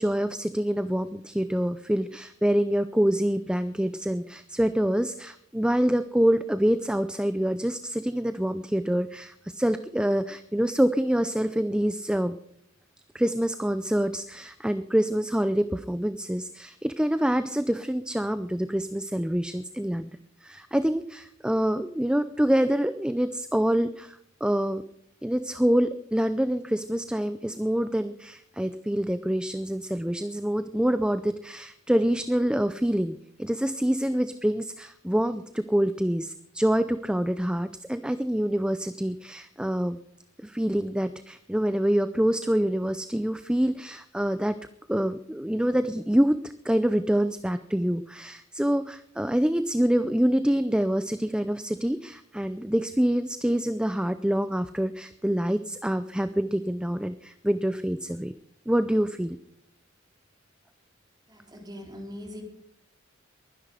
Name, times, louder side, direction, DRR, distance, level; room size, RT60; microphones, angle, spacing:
voice 1, 0.0-12.4 13.1-20.1 20.4-24.2 24.4-24.9 25.2-40.0 40.4-58.3 58.7-59.4, equal, 5° right, 11 dB, 0.5 m, -26 dB
voice 2, 61.3-62.4, equal, 20° right, 1 dB, 4.1 m, -41 dB
22.0 x 10.0 x 5.1 m, 0.71 s
head